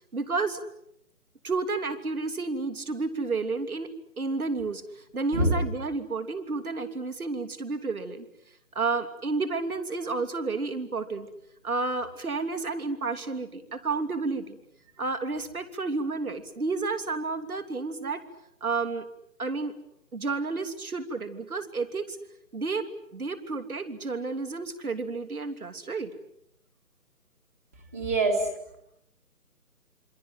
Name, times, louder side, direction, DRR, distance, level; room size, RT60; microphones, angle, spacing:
voice 1, 0.1-0.6 1.4-8.2 8.7-11.3 11.6-14.6 15.0-18.2 18.6-19.0 19.4-19.8 20.1-22.2 22.5-26.1, right 3 dB, 65° right, 9 dB, 3.1 m, -31 dB
voice 2, 27.9-28.8, right 2 dB, 10° right, 4 dB, 1.8 m, -25 dB
27.5 x 25.0 x 7.7 m, 0.76 s
figure-of-eight pair, 175°, 46 cm